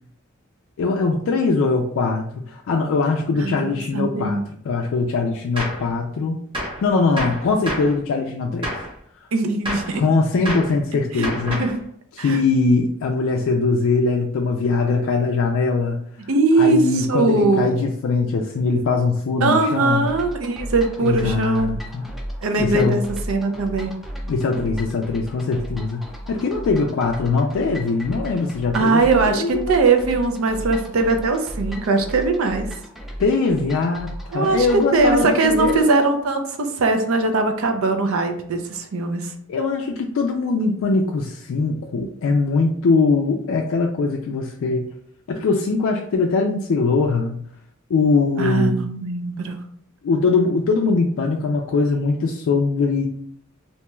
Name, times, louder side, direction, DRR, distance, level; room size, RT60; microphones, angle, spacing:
voice 1, 0.8-4.4 4.6-6.4 6.8-8.7 9.9-11.6 12.1-16.0 16.6-20.1 21.0-22.0 22.6-23.0 24.3-26.0 26.3-29.8 33.2-35.9 39.5-44.9 45.3-47.4 47.9-48.8 50.0-53.1, left 4 dB, 65° left, 0 dB, 0.3 m, -21 dB
voice 2, 3.4-4.4 9.3-10.0 11.1-11.8 12.2-12.4 16.3-17.7 19.4-21.7 22.4-24.0 28.7-32.7 34.3-34.7 34.9-39.3 48.4-49.6, right 3 dB, 75° right, 6 dB, 0.5 m, -20 dB
Gunshot gunfire, 5.6-5.9 6.5-6.8 7.2-8.0 8.6-8.9 9.6-10.0 10.5-10.8 11.2-11.8, equal, 25° right, 0.8 m, -28 dB
sound 1, 20.1-35.9, equal, ahead, 0.4 m, -35 dB
2.7 x 2.2 x 3.0 m, 0.63 s
head